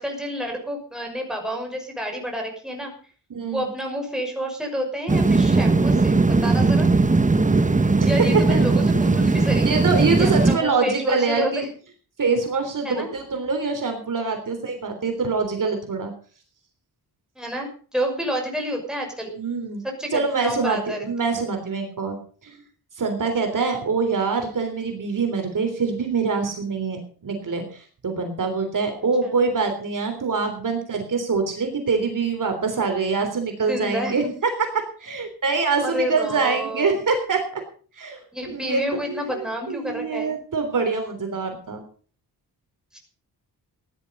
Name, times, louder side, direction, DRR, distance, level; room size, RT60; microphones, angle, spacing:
voice 1, 0.0-2.9 3.5-6.9 7.9-9.7 10.2-11.7 12.8-13.1 17.4-19.3 19.8-21.1 23.5-23.7 29.2-29.3 33.7-34.3 35.8-36.9 38.3-40.3 42.9-43.0, equal, ahead, 1 dB, 6.1 m, -29 dB
voice 2, 3.3-3.7 8.0-8.1 8.5-8.6 9.7-11.7 12.2-16.1 19.4-19.8 20.1-22.2 22.4-22.6 23.0-34.2 34.7-37.6 38.0-38.2 38.5-38.8 39.1-41.8, right 4 dB, 50° right, 5 dB, 3.5 m, -25 dB
sound 1, 5.1-10.6, right 3 dB, 20° right, 1.2 m, -18 dB
16.5 x 11.5 x 5.4 m, 0.42 s
wide cardioid pair, 115°, 39 cm